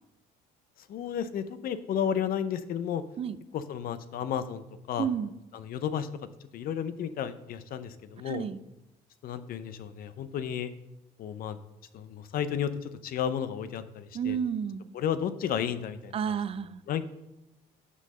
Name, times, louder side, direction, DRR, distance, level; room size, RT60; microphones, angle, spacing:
voice 1, 0.9-3.0 3.5-5.1 5.5-6.1 6.5-8.5 9.2-10.7 11.2-11.6 11.9-14.4 14.9-16.1 16.9-17.1, left 8 dB, 60° left, 13 dB, 0.6 m, -32 dB
voice 2, 5.0-5.3 8.2-8.6 14.1-14.9 16.1-16.8, right 7 dB, 35° right, 15 dB, 0.4 m, -31 dB
6.5 x 5.4 x 6.5 m, 0.92 s
cardioid pair, 110°, 17 cm